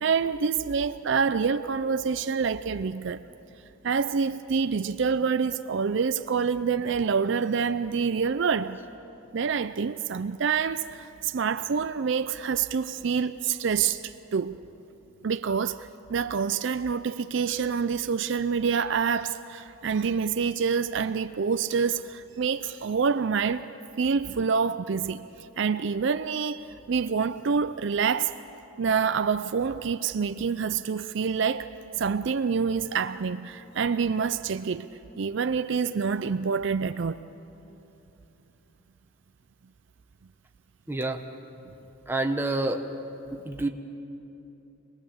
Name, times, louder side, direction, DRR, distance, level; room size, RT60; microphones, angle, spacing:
voice 1, 0.0-3.2 3.8-8.8 9.3-14.6 15.2-23.7 24.0-28.3 28.8-34.9 35.2-37.2, right 6 dB, 55° right, 0.4 m, -27 dB
voice 2, 40.9-41.2 42.1-42.8 43.3-43.7, right 2 dB, 10° right, 1.0 m, -28 dB
26.0 x 19.5 x 7.3 m
head